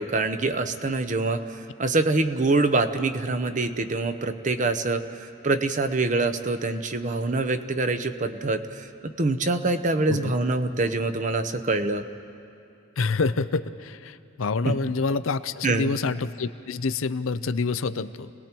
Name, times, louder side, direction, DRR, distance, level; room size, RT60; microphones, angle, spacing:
voice 1, 0.0-1.4 1.8-12.1 14.6-14.8 15.6-16.0, right 3 dB, 40° right, 9 dB, 0.8 m, -25 dB
voice 2, 10.1-10.4 13.0-18.3, left 4 dB, 90° left, 12 dB, 0.6 m, -27 dB
29.5 x 19.0 x 4.5 m, 2.8 s
head